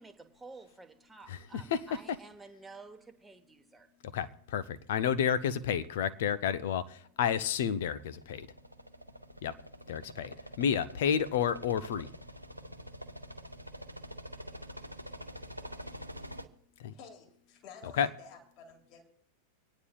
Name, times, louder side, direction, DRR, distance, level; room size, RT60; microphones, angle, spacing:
voice 1, 0.0-3.9, right 3 dB, 10° right, 1.1 m, -51 dB
voice 2, 1.3-2.2 4.1-8.5 9.4-9.6 9.9-12.1 16.8-16.9 18.0-18.1, left 8 dB, 55° left, 0.6 m, -31 dB
sound 1, 7.8-16.5, equal, 90° right, 0.6 m, -46 dB
voice 3, 16.9-19.0, left 6 dB, 40° left, 2.1 m, -52 dB
25.5 x 9.6 x 2.4 m
figure-of-eight pair, 90°, 0 cm